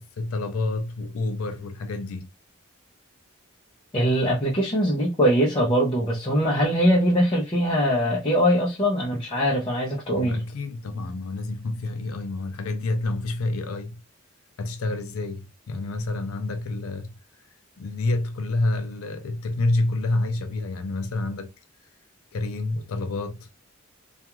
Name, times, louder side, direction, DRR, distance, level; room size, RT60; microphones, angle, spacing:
voice 1, 0.0-2.3 10.2-14.0 14.6-17.1 17.8-21.5 22.3-23.5, left 2 dB, 80° left, 0.4 m, -28 dB
voice 2, 3.9-10.4, equal, 25° left, 0.6 m, -22 dB
2.3 x 2.3 x 2.9 m
head